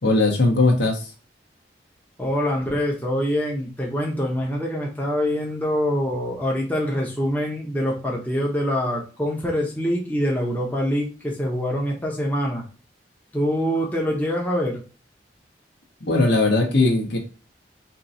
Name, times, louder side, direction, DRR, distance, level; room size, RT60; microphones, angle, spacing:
voice 1, 0.0-1.1 16.0-17.2, left 2 dB, 75° left, 2 dB, 1.1 m, -19 dB
voice 2, 2.2-12.6 13.3-14.8, equal, 10° left, -2 dB, 0.8 m, -25 dB
4.5 x 2.8 x 2.7 m, 0.35 s
head